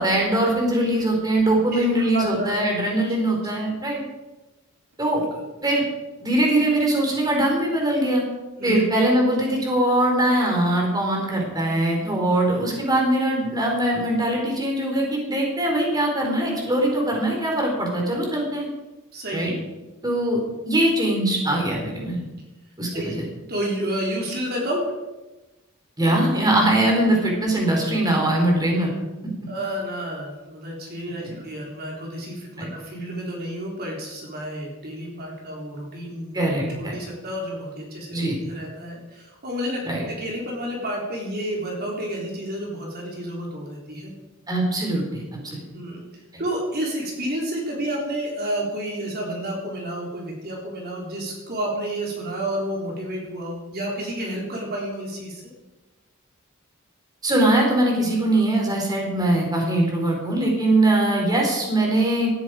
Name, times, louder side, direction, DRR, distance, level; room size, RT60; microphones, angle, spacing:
voice 1, 0.0-4.0 5.0-5.3 5.6-5.8 6.2-8.2 8.6-18.7 19.3-19.5 20.0-22.2 22.8-23.2 26.0-28.9 31.1-31.4 32.6-32.7 36.3-36.9 38.1-38.4 39.9-40.0 44.5-45.6 57.2-62.3, right 1 dB, 20° right, 0 dB, 4.1 m, -22 dB
voice 2, 2.1-2.5 8.6-8.8 19.1-19.4 22.9-23.2 23.5-24.8 29.5-36.3 36.7-38.2 38.5-44.1 45.7-46.1 46.4-55.5, right 1 dB, 45° right, -1 dB, 3.7 m, -30 dB
17.5 x 14.0 x 5.0 m, 1.1 s
head